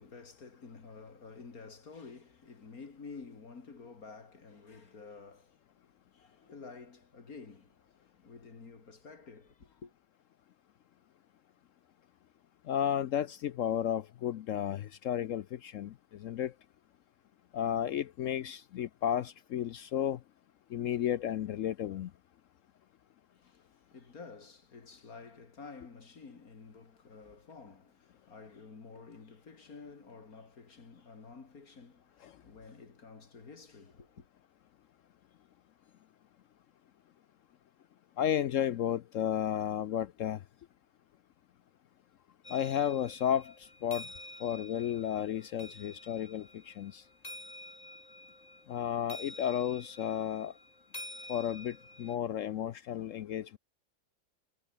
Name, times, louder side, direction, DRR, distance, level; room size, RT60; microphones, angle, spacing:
voice 1, 0.0-9.9 23.3-34.3, left 4 dB, 50° left, 2.8 m, -51 dB
voice 2, 12.7-16.5 17.5-20.2 20.7-22.1 38.2-40.4 42.5-44.1 44.4-47.0 48.7-50.5 51.3-53.6, left 10 dB, 70° left, 0.7 m, -33 dB
sound 1, 42.4-52.2, left 1 dB, 20° left, 5.5 m, -49 dB
omnidirectional pair, 1.9 m